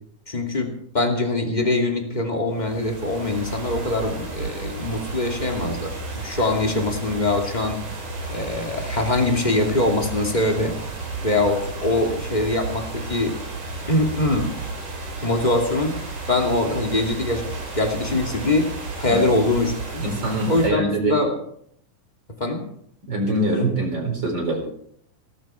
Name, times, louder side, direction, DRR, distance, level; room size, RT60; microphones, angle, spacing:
voice 1, 0.3-7.8 8.3-10.7 11.2-13.4 13.9-14.6 15.2-16.0 16.3-18.7 19.0-20.0 20.5-21.3 22.4-22.7, left 2 dB, 15° left, 2 dB, 2.3 m, -23 dB
sound 1, 2.5-20.7, right 3 dB, 80° right, 5.4 m, -33 dB
voice 2, 20.0-21.2 23.1-24.6, right 1 dB, 35° right, 2 dB, 4.9 m, -23 dB
17.5 x 14.0 x 4.5 m, 0.66 s
omnidirectional pair, 3.6 m